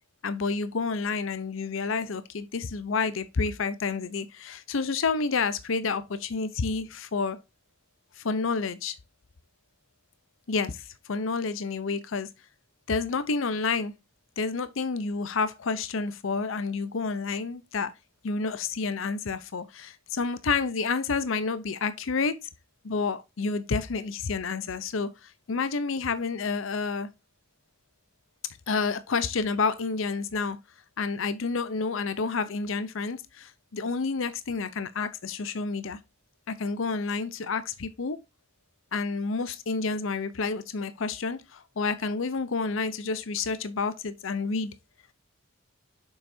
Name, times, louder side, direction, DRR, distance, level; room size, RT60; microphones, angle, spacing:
voice 1, 0.2-7.4 8.2-8.9 10.5-12.3 12.9-13.9 14.4-17.9 18.2-22.5 22.8-27.1 28.7-30.6 31.0-36.0 36.5-38.2 38.9-44.7, left 4 dB, 75° left, 0.6 m, -29 dB
7.0 x 5.6 x 2.6 m
head